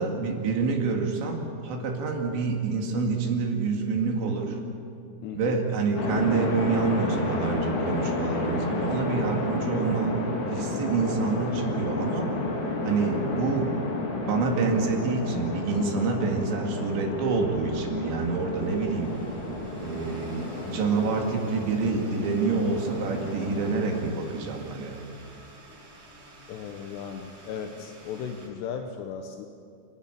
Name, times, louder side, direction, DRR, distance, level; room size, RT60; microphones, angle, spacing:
voice 1, 0.0-4.6 5.4-10.2 10.5-12.3 12.8-13.7 14.2-19.2 19.8-25.0, right 4 dB, 85° right, 1 dB, 4.5 m, -27 dB
voice 2, 5.2-5.6 26.5-29.5, left 7 dB, 80° left, 5 dB, 3.1 m, -36 dB
sound 1, 5.9-24.0, left 2 dB, 45° left, 3.7 m, -31 dB
sound 2, 17.0-28.5, right 1 dB, 65° right, 7.4 m, -50 dB
29.0 x 12.5 x 8.7 m, 2.4 s
omnidirectional pair, 5.0 m